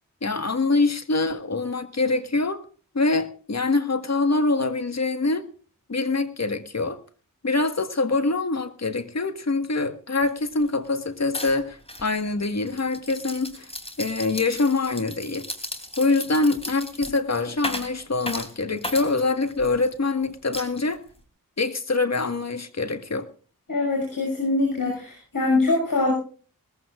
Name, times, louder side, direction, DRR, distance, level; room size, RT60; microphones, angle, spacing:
voice 1, 0.2-2.6 2.9-5.4 5.9-7.0 7.4-13.7 14.0-15.5 16.0-21.0 21.6-23.3, left 3 dB, 50° left, 1.7 m, -24 dB
sound 1, 10.2-10.3 10.6-10.9 11.3-19.9 20.5-21.2, left 1 dB, 15° left, 3.2 m, -36 dB
voice 2, 23.7-26.1, left 2 dB, 75° left, 6.1 m, -23 dB
20.5 x 15.0 x 2.5 m
cardioid pair, 45°, 34 cm